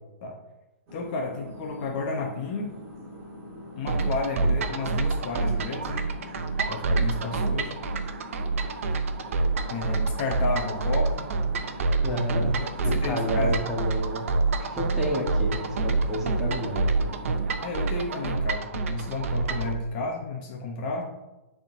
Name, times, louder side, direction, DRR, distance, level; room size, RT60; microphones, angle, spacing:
voice 1, 0.9-2.7 3.8-6.1 6.7-7.8 9.7-11.3 12.6-13.6 17.6-21.1, left 3 dB, 35° left, 1 dB, 0.8 m, -32 dB
sound 1, 0.9-18.3, left 1 dB, 25° right, 1.6 m, -44 dB
sound 2, 3.9-19.7, right 3 dB, 65° right, 0.6 m, -27 dB
voice 2, 12.0-12.5 12.8-14.2 14.6-17.1, equal, 5° right, -4 dB, 1.2 m, -30 dB
9.6 x 3.7 x 2.7 m, 1.0 s
hypercardioid pair, 155°, 8 cm